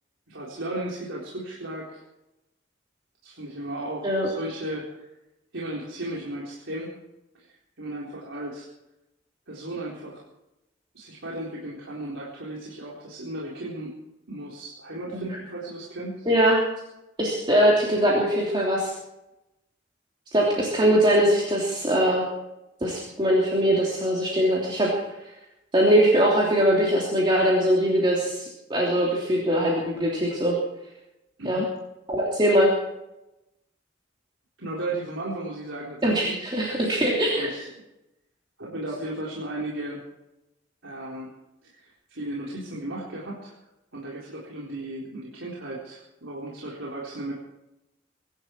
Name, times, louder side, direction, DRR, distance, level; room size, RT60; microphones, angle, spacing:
voice 1, 0.3-2.0 3.2-5.1 5.5-7.0 7.4-7.5 7.8-8.7 9.5-10.2 10.9-13.9 14.3-16.3 31.4-31.7 34.6-36.3 37.3-37.7 38.6-40.0 40.8-41.3 41.6-43.6 43.9-47.3, right 1 dB, 85° right, -5 dB, 4.0 m, -35 dB
voice 2, 16.3-16.6 17.2-18.9 20.3-22.2 22.8-24.9 25.7-30.5 31.4-31.6 32.1-32.7 36.0-37.5, equal, 25° right, -4 dB, 3.1 m, -21 dB
24.0 x 11.5 x 4.6 m, 0.93 s
head